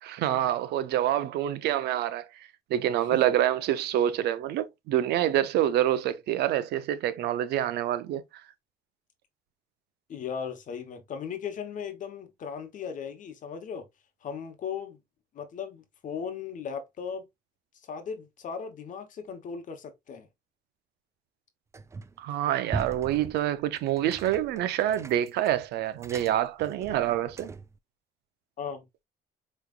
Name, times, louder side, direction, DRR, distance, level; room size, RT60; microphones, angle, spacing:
voice 1, 0.0-2.3 2.7-8.2 22.2-27.5, right 12 dB, 75° right, 0.6 m, -27 dB
voice 2, 10.1-13.8 14.2-15.0 15.3-17.2 17.9-20.3 28.6-28.9, left 7 dB, 50° left, 1.0 m, -37 dB
sound 1, 21.7-22.3 22.7-27.8, right 4 dB, 15° right, 0.3 m, -41 dB
5.0 x 3.1 x 2.3 m
cardioid pair, 110°, 17 cm